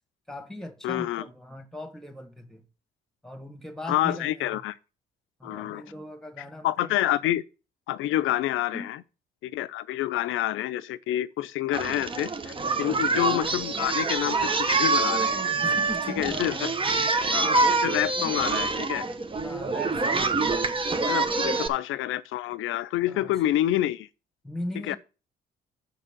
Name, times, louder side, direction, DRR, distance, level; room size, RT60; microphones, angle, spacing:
voice 1, 0.3-2.6 3.2-4.6 5.4-6.9 8.7-8.9 12.8-13.1 15.6-17.1 19.4-20.3 21.4-21.5 23.1-23.4 24.4-25.0, left 1 dB, ahead, 1.6 m, -39 dB
voice 2, 0.8-1.2 3.9-4.8 5.4-5.9 6.6-7.4 7.9-9.0 9.4-15.6 16.2-16.7 17.3-19.0 21.1-24.1 24.8-25.0, left 13 dB, 85° left, 0.6 m, -28 dB
Singing, 11.7-21.7, right 3 dB, 25° right, 1.0 m, -26 dB
6.8 x 5.4 x 7.2 m
cardioid pair, 90°, 20 cm